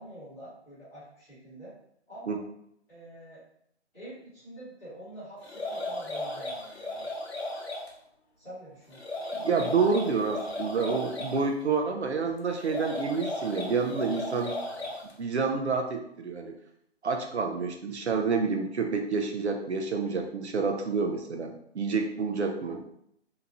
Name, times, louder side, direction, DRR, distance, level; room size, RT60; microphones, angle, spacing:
voice 1, 0.0-1.7 2.1-2.4 2.9-3.4 3.9-7.1 8.4-9.1, right 1 dB, 5° left, -15 dB, 1.0 m, -46 dB
sound 1, 5.4-7.9 8.9-11.4 12.5-15.1, left 2 dB, 65° left, 0.7 m, -35 dB
voice 2, 9.3-14.5 15.2-16.6 17.0-22.8, right 4 dB, 70° right, 4 dB, 0.5 m, -28 dB
2.8 x 2.2 x 2.7 m, 0.72 s
figure-of-eight pair, 145°, 34 cm